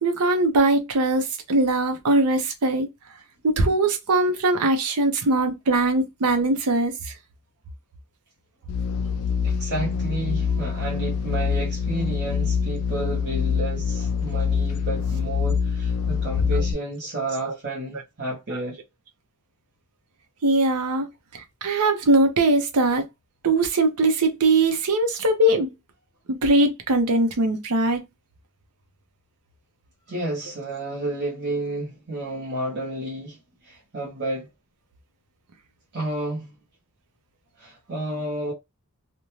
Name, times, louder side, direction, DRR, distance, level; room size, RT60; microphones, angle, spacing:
voice 1, 0.0-2.9 3.4-7.1 17.4-17.5 20.4-21.1 21.3-23.1 23.4-25.7 26.3-28.0, right 2 dB, 90° right, 0.6 m, -21 dB
sound 1, 8.7-16.7, left 6 dB, 75° left, 0.3 m, -25 dB
voice 2, 9.4-18.8 30.1-33.4 33.6-34.5 35.9-36.5 37.6-38.5, right 2 dB, 50° right, 0.9 m, -31 dB
2.6 x 2.1 x 3.0 m
head